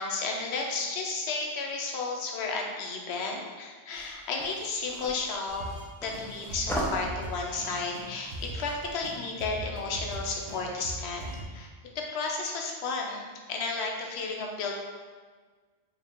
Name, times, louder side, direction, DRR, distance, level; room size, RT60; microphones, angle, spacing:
voice 1, 0.0-5.7 6.0-11.7 11.9-14.8, left 3 dB, 70° left, 0 dB, 0.9 m, -33 dB
sound 1, 3.9-9.0, equal, 5° left, 0.3 m, -38 dB
sound 2, 5.5-5.9 6.1-6.2 6.5-8.8 9.0-11.4, right 1 dB, 60° right, 0.9 m, -40 dB
5.0 x 2.3 x 3.5 m, 1.5 s
omnidirectional pair, 1.1 m